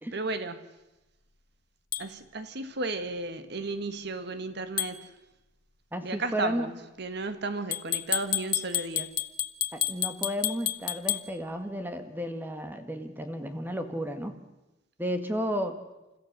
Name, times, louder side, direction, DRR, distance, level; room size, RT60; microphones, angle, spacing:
voice 1, 0.1-0.6 2.0-5.1 6.0-9.2, right 3 dB, 60° right, 10 dB, 1.4 m, -34 dB
sound 1, 1.9-2.1 4.8-5.0 7.7-11.3, left 12 dB, 45° left, 0.9 m, -30 dB
voice 2, 5.9-6.7 9.7-14.3 15.0-15.8, equal, 10° right, 7 dB, 1.7 m, -33 dB
29.0 x 14.5 x 6.6 m, 1.0 s
head